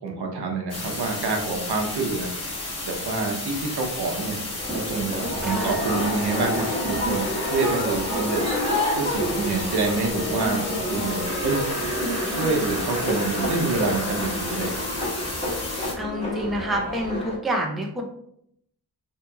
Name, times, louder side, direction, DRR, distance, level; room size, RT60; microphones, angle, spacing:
voice 1, 0.0-2.3 2.8-4.4 4.7-8.4 8.9-11.6 12.2-14.8, right 3 dB, 85° right, 1 dB, 0.7 m, -27 dB
sound 1, 0.7-15.9, left 2 dB, 40° left, 0.8 m, -33 dB
sound 2, 4.6-17.4, left 1 dB, 15° left, 1.0 m, -29 dB
voice 2, 5.4-5.8 16.0-18.0, right 1 dB, ahead, 1 dB, 0.3 m, -28 dB
Laughter, 11.2-16.5, right 1 dB, 50° right, 0.8 m, -38 dB
2.8 x 2.7 x 2.2 m, 0.71 s
wide cardioid pair, 130°, 39 cm